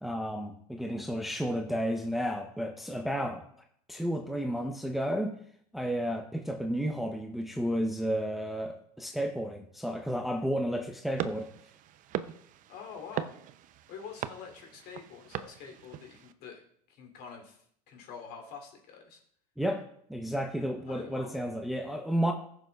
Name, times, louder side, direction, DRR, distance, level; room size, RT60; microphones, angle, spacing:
voice 1, 0.0-3.5 3.9-5.4 5.7-11.5 19.6-19.8 20.1-22.3, equal, ahead, 3 dB, 0.8 m, -32 dB
sound 1, 11.2-16.3, right 11 dB, 40° right, 0.6 m, -40 dB
voice 2, 12.7-13.3 13.9-19.2 20.9-21.4, left 6 dB, 55° left, 1 dB, 3.0 m, -46 dB
15.0 x 6.8 x 2.4 m, 0.67 s
hypercardioid pair, 90°, 20 cm